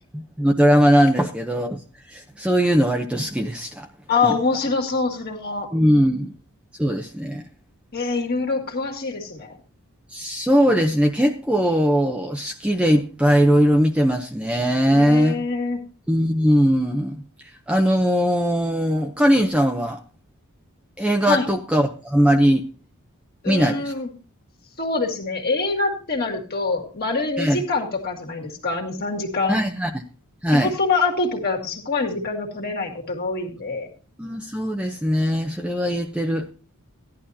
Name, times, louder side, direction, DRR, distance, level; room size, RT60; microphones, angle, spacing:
voice 1, 0.1-1.8 2.1-3.9 4.2-4.3 5.7-6.3 6.8-7.4 10.1-15.4 16.1-17.2 17.7-20.0 21.0-22.6 23.4-23.9 27.4-27.6 29.5-29.9 30.4-30.7 34.2-36.5, equal, 5° right, 2 dB, 0.7 m, -20 dB
voice 2, 4.1-5.7 7.9-9.6 14.9-15.8 21.3-21.5 23.4-24.1 24.8-29.6 30.6-33.9, left 3 dB, 45° left, 1 dB, 2.2 m, -25 dB
16.0 x 11.0 x 2.8 m, 0.35 s
head